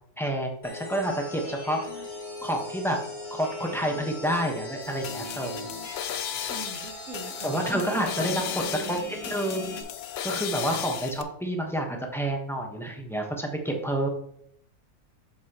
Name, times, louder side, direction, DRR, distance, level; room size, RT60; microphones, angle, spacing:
voice 1, 0.2-1.8 2.4-3.0 3.3-5.7 7.4-9.0 9.2-9.8 10.2-14.1, right 1 dB, ahead, 1 dB, 1.0 m, -29 dB
sound 1, 0.6-9.8, left 2 dB, 30° left, 1.9 m, -39 dB
sound 2, 4.8-11.2, left 9 dB, 70° left, 0.6 m, -35 dB
voice 2, 6.5-7.8 8.1-9.0, right 2 dB, 65° right, -1 dB, 1.6 m, -40 dB
7.3 x 7.1 x 3.0 m, 0.67 s
omnidirectional pair, 1.6 m